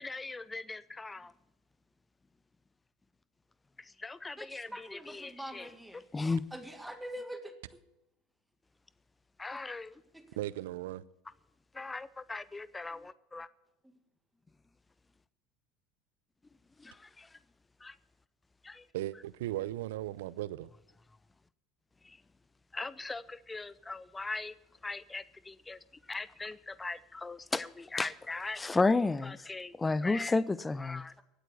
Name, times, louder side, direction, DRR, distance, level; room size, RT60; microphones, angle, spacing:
voice 1, 0.0-1.3 4.0-5.7 5.9-6.4 9.4-9.9 11.8-13.5 16.8-17.3 17.8-17.9 18.6-18.8 22.7-24.5 24.8-25.8 26.1-31.1, left 3 dB, 15° left, 0.6 m, -35 dB
voice 2, 4.4-6.0 6.5-7.5 9.5-9.6 10.1-10.2, equal, 5° right, 1.8 m, -44 dB
voice 3, 10.4-11.0 18.9-20.7, right 14 dB, 75° right, 0.6 m, -37 dB
16.0 x 9.1 x 6.9 m
hypercardioid pair, 80°, 0 cm